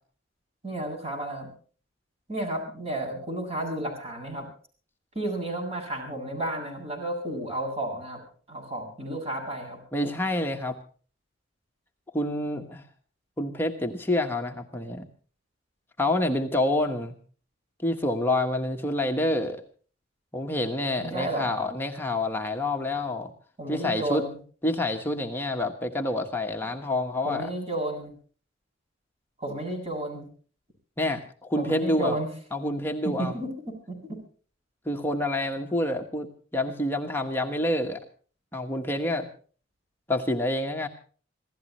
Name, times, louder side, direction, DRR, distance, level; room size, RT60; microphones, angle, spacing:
voice 1, 0.6-1.5 2.3-4.5 5.1-8.2 8.5-9.8 21.0-21.5 23.6-24.4 27.2-28.1 29.4-30.3 31.6-32.3 33.0-34.2, right 1 dB, 30° right, 3 dB, 7.6 m, -32 dB
voice 2, 9.9-10.8 12.1-12.8 13.4-15.1 16.0-17.1 17.8-19.6 20.3-23.3 23.7-24.2 24.6-27.5 31.0-32.1 32.5-33.3 34.8-36.3 36.5-38.0 38.5-39.3 40.1-40.9, left 1 dB, 10° left, 3 dB, 1.3 m, -27 dB
26.5 x 16.5 x 3.1 m, 0.42 s
head